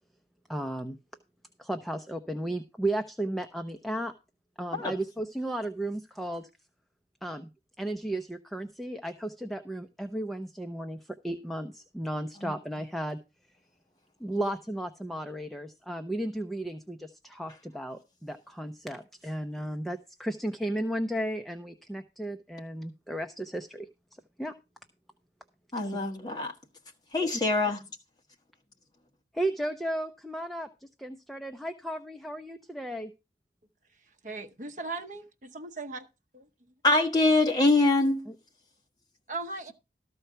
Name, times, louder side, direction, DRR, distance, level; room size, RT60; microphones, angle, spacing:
voice 1, 0.5-1.0 1.6-4.1 4.6-6.5 7.2-7.5 7.8-13.2 14.2-23.9 24.4-24.5 29.3-33.1 38.3-38.4, right 1 dB, ahead, 0.6 m, -34 dB
voice 2, 25.7-26.5 27.1-27.8 36.8-38.3, left 2 dB, 25° left, 1.6 m, -24 dB
voice 3, 34.2-36.0 39.3-39.7, right 3 dB, 45° right, 0.9 m, -37 dB
13.5 x 4.6 x 6.7 m
head